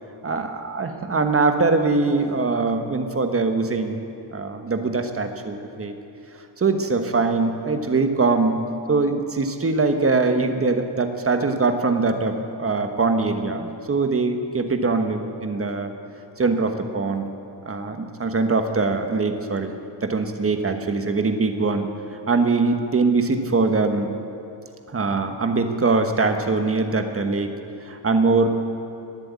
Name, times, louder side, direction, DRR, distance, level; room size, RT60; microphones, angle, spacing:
voice 1, 0.8-4.0 4.3-5.9 6.6-8.6 8.9-15.9 16.4-17.3 17.6-19.7 20.0-21.9 22.3-24.1 24.9-27.6 27.8-28.5, right 3 dB, 30° right, 6 dB, 1.2 m, -22 dB
22.0 x 7.9 x 8.3 m, 2.7 s
wide cardioid pair, 140°, 45 cm